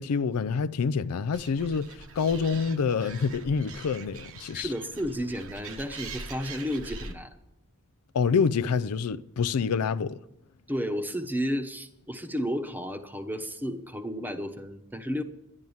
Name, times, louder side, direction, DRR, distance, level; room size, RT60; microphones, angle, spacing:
voice 1, 0.0-4.7 8.1-10.2, left 5 dB, 80° left, 0.4 m, -27 dB
Animal, 1.3-7.1, right 3 dB, 65° right, 1.2 m, -43 dB
voice 2, 4.5-7.3 10.7-15.2, equal, 10° right, 1.0 m, -32 dB
11.0 x 10.5 x 7.1 m
head